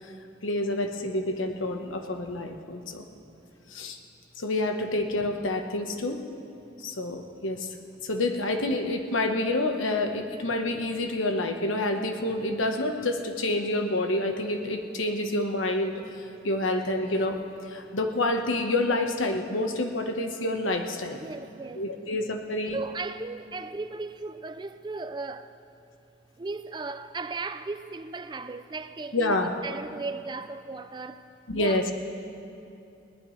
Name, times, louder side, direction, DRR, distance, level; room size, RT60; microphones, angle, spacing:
voice 1, 0.4-3.0 3.7-4.0 4.4-6.2 6.8-7.7 8.0-17.4 17.7-21.2 21.8-22.8 29.1-29.5 31.5-31.9, left 2 dB, 90° left, 1.2 m, -28 dB
voice 2, 21.1-21.9 22.6-25.5 26.4-31.9, right 3 dB, 20° right, 0.4 m, -36 dB
20.5 x 18.0 x 3.3 m
head